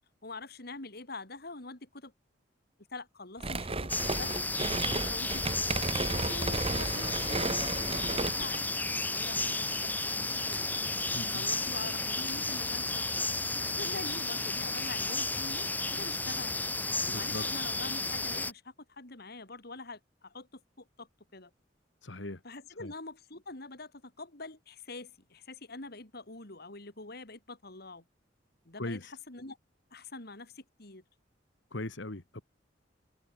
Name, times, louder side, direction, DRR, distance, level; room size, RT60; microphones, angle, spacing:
voice 1, 0.2-2.1 2.9-4.4 4.7-5.8 6.1-8.7 9.0-10.7 11.3-13.2 13.6-16.6 17.1-21.5 22.4-28.0 28.7-29.6 29.9-31.0, left 3 dB, 60° left, 3.8 m, -45 dB
sound 1, 3.4-8.6, right 3 dB, 30° right, 1.5 m, -34 dB
sound 2, 3.9-18.5, left 2 dB, 10° left, 1.4 m, -33 dB
voice 2, 11.1-11.5 17.1-17.4 22.0-22.4 22.8-22.9 28.8-29.1 31.7-32.4, left 2 dB, 90° left, 2.0 m, -39 dB
open air
head